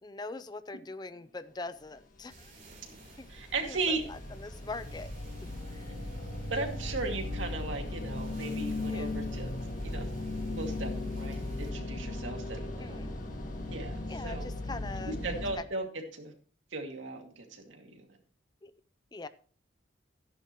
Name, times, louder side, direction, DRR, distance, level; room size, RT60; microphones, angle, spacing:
voice 1, 0.0-3.3 3.7-5.1 5.7-6.0 8.8-9.2 12.8-13.2 14.1-15.2 15.6-15.7 18.6-18.7 19.1-19.3, left 3 dB, 20° left, 14 dB, 0.4 m, -43 dB
sound 1, 2.3-15.5, left 2 dB, 45° left, 1.9 m, -37 dB
sound 2, 2.3-11.7, right 3 dB, 40° right, 3.7 m, -57 dB
voice 2, 3.3-4.0 6.5-9.5 9.8-10.1 10.5-13.0 13.7-14.5 15.1-15.9 16.1-16.3 16.7-17.9, right 3 dB, 80° right, 3 dB, 2.3 m, -36 dB
13.0 x 10.5 x 3.1 m, 0.41 s
head